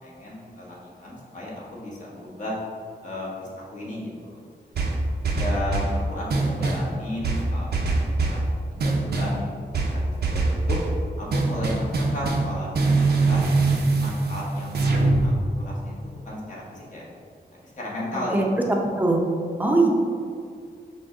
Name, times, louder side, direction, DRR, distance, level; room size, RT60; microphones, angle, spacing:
voice 1, 0.0-0.7 1.0-2.6 3.0-4.4 5.3-7.9 8.2-8.4 8.7-9.7 9.9-10.8 11.2-11.8 12.1-13.5 14.0-17.1 17.8-18.7, left 1 dB, 45° left, -6 dB, 1.2 m, -34 dB
sound 1, 4.8-6.0 6.3-6.9 7.2-8.4 8.8-9.4 9.7-10.9 11.3-15.3, right 3 dB, 70° right, 0.6 m, -23 dB
voice 2, 18.3-19.2 19.6-19.9, right 2 dB, 10° right, 0 dB, 0.6 m, -21 dB
6.0 x 2.2 x 3.7 m, 2.2 s
wide cardioid pair, 100°, 18 cm